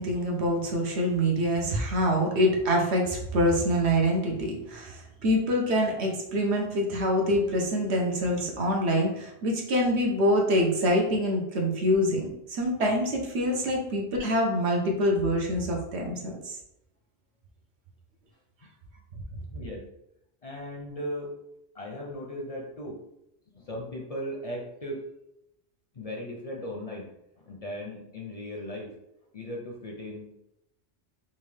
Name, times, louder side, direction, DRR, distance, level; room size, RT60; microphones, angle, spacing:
voice 1, 0.0-16.6, equal, 80° right, 0 dB, 1.1 m, -25 dB
voice 2, 19.5-19.8 20.4-21.3 21.7-23.0 23.5-25.0 25.9-27.1 27.4-29.0 29.3-30.4, equal, 45° left, -1 dB, 0.5 m, -37 dB
3.6 x 2.6 x 3.3 m, 0.83 s
omnidirectional pair, 1.1 m